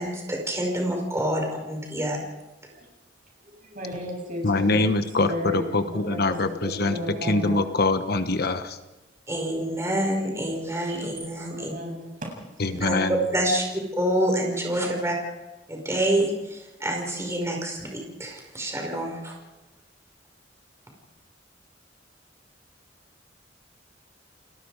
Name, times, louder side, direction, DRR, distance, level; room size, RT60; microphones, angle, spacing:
voice 1, 0.0-2.3 9.3-11.7 12.7-13.6 13.9-15.2 15.7-19.4, right 1 dB, 15° right, 2 dB, 5.2 m, -27 dB
voice 2, 3.4-7.6 10.9-11.0 11.4-12.7, left 1 dB, 50° right, 0 dB, 8.0 m, -35 dB
voice 3, 4.4-6.9 7.2-8.8 12.6-13.2, left 2 dB, 60° left, 9 dB, 1.3 m, -24 dB
30.0 x 19.5 x 4.9 m, 1.1 s
head